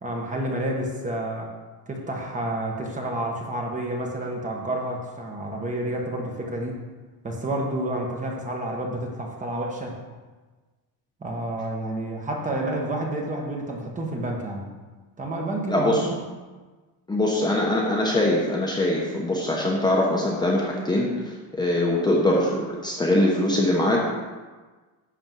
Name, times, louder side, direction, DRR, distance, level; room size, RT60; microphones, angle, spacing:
voice 1, 0.0-1.5 1.9-6.8 7.2-10.0 11.2-14.7 15.2-16.3, right 1 dB, 20° right, 0 dB, 1.3 m, -29 dB
voice 2, 15.7-16.1 17.1-24.0, left 1 dB, 10° left, -3 dB, 1.0 m, -22 dB
11.0 x 4.3 x 7.5 m, 1.3 s
cardioid pair, 170°, 40 cm